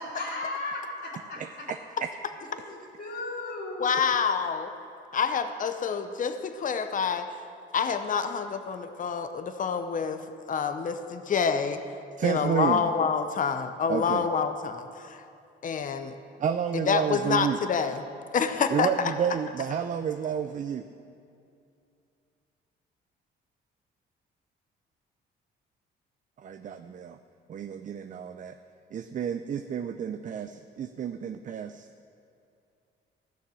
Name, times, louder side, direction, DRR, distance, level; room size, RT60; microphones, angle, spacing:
voice 1, 0.0-1.7 2.4-3.9, left 2 dB, 60° left, -6 dB, 3.4 m, -36 dB
voice 2, 1.4-2.1 12.2-12.9 13.9-14.3 16.4-17.6 18.7-20.8 26.4-27.2 27.5-28.6 28.9-31.9, right 8 dB, 40° right, 8 dB, 0.4 m, -30 dB
voice 3, 3.8-4.7 5.1-7.3 7.7-10.2 10.5-11.8 12.2-15.3 15.6-16.2 16.7-18.0 18.3-19.1, left 6 dB, 40° left, 9 dB, 0.7 m, -27 dB
14.5 x 6.6 x 6.2 m, 2.5 s
cardioid pair, 90°, 20 cm